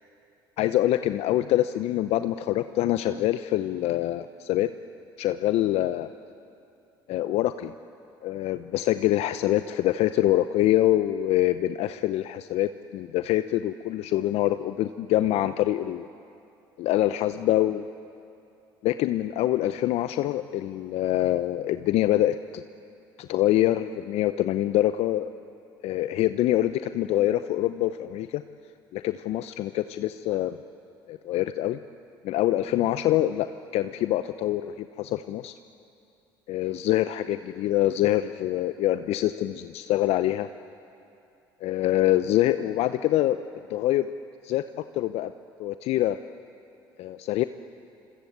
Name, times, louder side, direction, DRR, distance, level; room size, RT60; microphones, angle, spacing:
voice 1, 0.6-4.7 5.2-6.1 7.1-7.7 8.2-16.1 16.8-17.9 18.8-22.6 23.2-25.3 25.8-28.4 28.9-30.6 31.1-31.8 32.2-33.5 33.7-35.5 36.5-40.5 41.6-43.4 43.7-44.1 44.4-44.6 44.9-45.3 45.6-46.2 47.0-47.4, left 14 dB, 60° left, 11 dB, 0.7 m, -25 dB
27.0 x 26.0 x 8.1 m, 2.7 s
hypercardioid pair, 65°, 12 cm